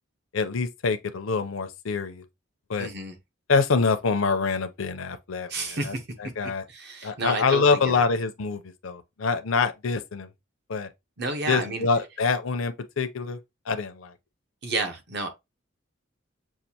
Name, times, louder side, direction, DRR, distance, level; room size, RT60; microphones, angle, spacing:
voice 1, 0.3-2.2 2.7-2.9 3.5-5.5 5.8-5.9 6.2-6.6 7.0-10.3 10.7-10.9 11.5-13.4 13.7-14.1, left 4 dB, 80° left, 0.6 m, -25 dB
voice 2, 2.8-3.2 5.5-6.1 6.7-8.0 11.2-11.9 14.6-15.3, right 2 dB, 55° right, 0.9 m, -31 dB
6.4 x 2.5 x 2.8 m
head